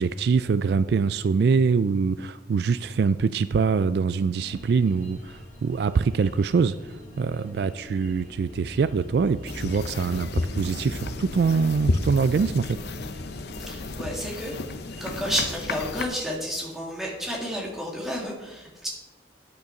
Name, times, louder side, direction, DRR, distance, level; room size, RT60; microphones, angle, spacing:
voice 1, 0.0-12.8, right 5 dB, 55° right, 14 dB, 0.3 m, -24 dB
sound 1, 4.4-15.3, left 1 dB, 40° left, 3.1 m, -44 dB
sound 2, 9.5-16.0, left 2 dB, 60° left, 0.7 m, -32 dB
voice 2, 13.5-14.6 15.0-18.9, equal, ahead, -3 dB, 2.2 m, -31 dB
9.3 x 8.4 x 5.9 m, 1.1 s
head